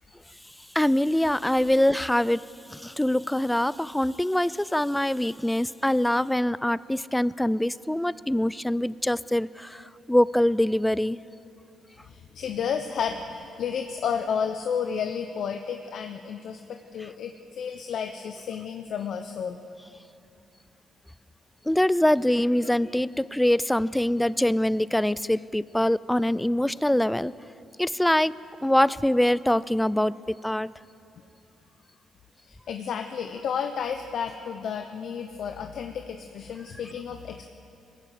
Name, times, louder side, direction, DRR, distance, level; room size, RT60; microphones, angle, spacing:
voice 1, 0.7-2.4 2.7-11.2 21.7-27.3 27.8-30.7, left 1 dB, 5° left, 19 dB, 0.4 m, -24 dB
voice 2, 12.1-19.6 32.5-37.5, left 7 dB, 65° left, 6 dB, 0.9 m, -32 dB
20.5 x 15.5 x 9.4 m, 2.7 s
cardioid pair, 90°, 0 cm